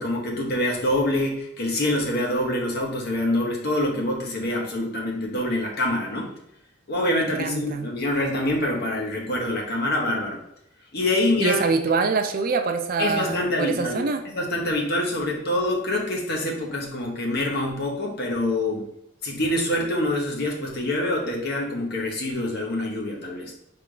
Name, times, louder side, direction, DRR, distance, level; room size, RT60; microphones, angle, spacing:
voice 1, 0.0-6.3 6.9-10.4 10.9-11.6 13.0-18.9 19.2-23.5, left 1 dB, 55° left, 0 dB, 1.1 m, -25 dB
voice 2, 7.1-7.9 11.4-14.2, right 4 dB, 45° right, 6 dB, 0.5 m, -25 dB
4.1 x 3.4 x 3.8 m, 0.76 s
head